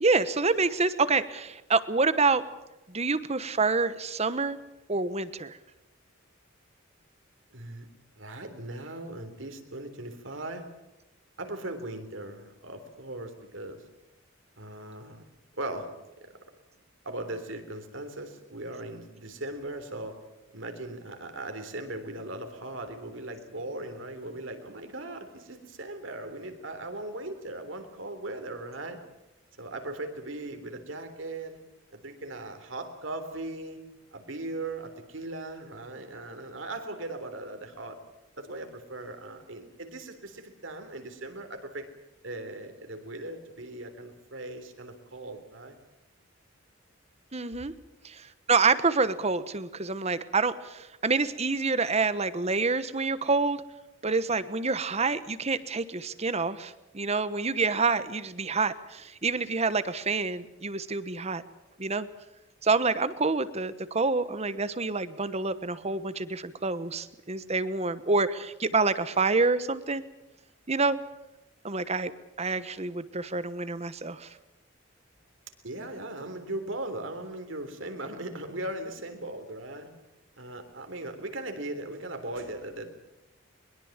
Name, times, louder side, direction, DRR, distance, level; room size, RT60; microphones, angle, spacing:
voice 1, 0.0-2.4 2.9-4.6 4.9-5.6 47.3-47.7 48.0-53.6 54.0-61.4 61.8-62.1 62.6-70.0 70.7-71.0 71.6-72.1 72.4-74.3, right 4 dB, 35° right, 14 dB, 1.1 m, -27 dB
voice 2, 7.5-7.9 8.2-10.7 11.4-13.8 14.6-15.2 15.6-15.9 16.2-16.4 17.1-20.2 20.5-29.0 29.6-31.6 31.9-33.8 34.1-38.0 38.4-41.9 42.2-45.8 75.6-79.9 80.4-82.9, right 2 dB, 70° right, 7 dB, 3.5 m, -38 dB
22.5 x 22.0 x 7.4 m, 0.97 s
head